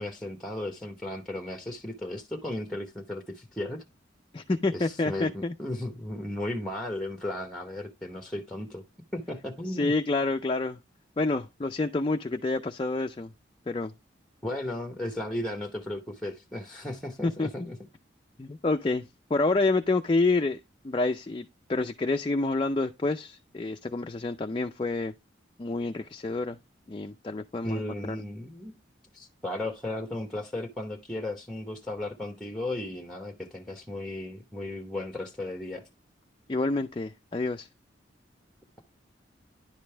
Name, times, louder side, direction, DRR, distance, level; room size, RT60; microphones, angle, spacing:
voice 1, 0.0-3.8 4.7-8.8 9.1-9.9 14.4-17.8 27.6-28.7 29.1-35.8, left 1 dB, ahead, 0.8 m, -35 dB
voice 2, 4.3-5.5 9.7-10.8 11.2-13.3 13.7-13.9 17.2-17.7 18.4-20.6 20.8-25.1 25.6-26.6 26.9-27.8 28.1-28.2 36.5-37.7, left 3 dB, 25° left, 0.4 m, -28 dB
10.5 x 5.2 x 3.2 m
head